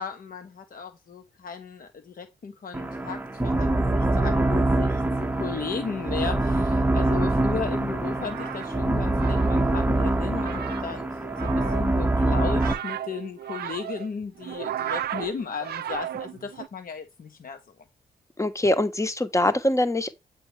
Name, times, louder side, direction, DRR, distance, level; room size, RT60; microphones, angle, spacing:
voice 1, 0.0-17.6, left 5 dB, 50° left, 1.0 m, -35 dB
sound 1, 2.7-12.7, right 2 dB, 10° right, 0.9 m, -24 dB
sound 2, 8.0-16.7, right 11 dB, 60° right, 0.5 m, -36 dB
voice 2, 18.4-20.1, left 1 dB, 15° left, 1.0 m, -23 dB
8.0 x 4.6 x 3.2 m
hypercardioid pair, 45°, 19 cm